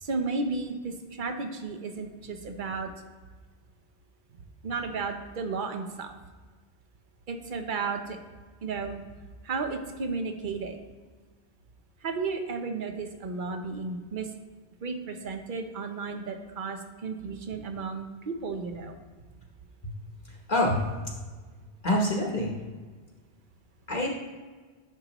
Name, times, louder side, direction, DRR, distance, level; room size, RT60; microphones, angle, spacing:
voice 1, 0.0-2.9 4.6-6.1 7.3-8.2 8.6-9.0 9.4-10.8 12.0-14.3 14.8-19.0, right 4 dB, 55° right, 6 dB, 0.8 m, -33 dB
voice 2, 20.2-21.2 21.8-22.5 23.9-24.1, left 1 dB, 45° left, -1 dB, 1.0 m, -26 dB
10.5 x 5.2 x 3.0 m, 1.4 s
omnidirectional pair, 1.1 m